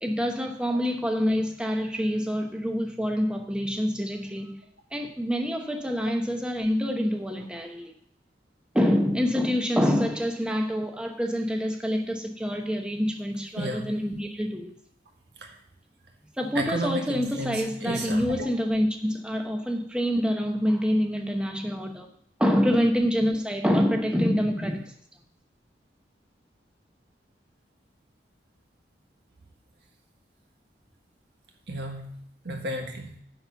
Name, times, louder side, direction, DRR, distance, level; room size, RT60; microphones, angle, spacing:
voice 1, 0.0-4.6 4.9-7.9 8.7-14.7 16.4-22.1 22.4-24.9, equal, 5° right, 3 dB, 0.8 m, -26 dB
voice 2, 13.6-13.9 15.4-15.6 16.5-18.5 31.7-32.2 32.4-33.1, right 1 dB, 70° right, 2 dB, 1.5 m, -32 dB
10.0 x 4.3 x 7.0 m, 0.66 s
head